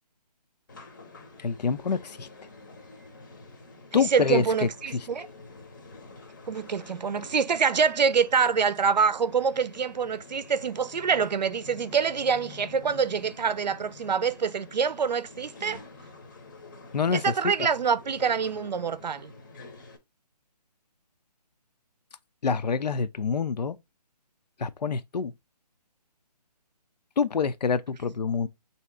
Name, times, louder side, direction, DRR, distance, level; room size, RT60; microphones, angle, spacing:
sound 1, 0.7-20.0, left 3 dB, 30° left, 0.7 m, -47 dB
voice 1, 1.4-2.3 3.9-5.0 16.9-17.5 22.4-23.8 24.6-25.3 27.2-28.5, left 5 dB, 75° left, 0.6 m, -26 dB
voice 2, 3.9-5.3 6.5-15.8 17.1-19.3, right 6 dB, 85° right, 0.6 m, -26 dB
3.2 x 2.8 x 4.6 m
hypercardioid pair, 165°, 21 cm